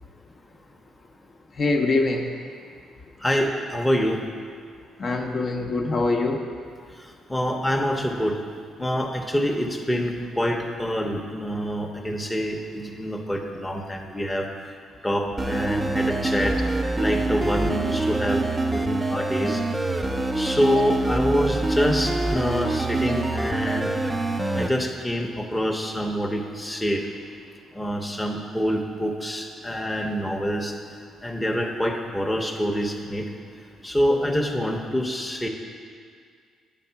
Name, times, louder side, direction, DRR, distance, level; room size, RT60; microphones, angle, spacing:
voice 1, 1.5-2.3 5.0-6.4, left 3 dB, 50° left, 1 dB, 0.7 m, -23 dB
voice 2, 3.2-4.2 7.0-8.4 8.8-14.5 15.0-16.6 17.0-18.4 18.7-19.6 20.3-23.9 24.5-27.0 27.7-30.8 31.2-33.3 33.8-35.5, equal, 5° left, 1 dB, 0.7 m, -26 dB
sound 1, 15.4-24.7, right 2 dB, 15° right, 0.4 m, -25 dB
9.0 x 3.7 x 5.6 m, 2.2 s
cardioid pair, 90°, 0 cm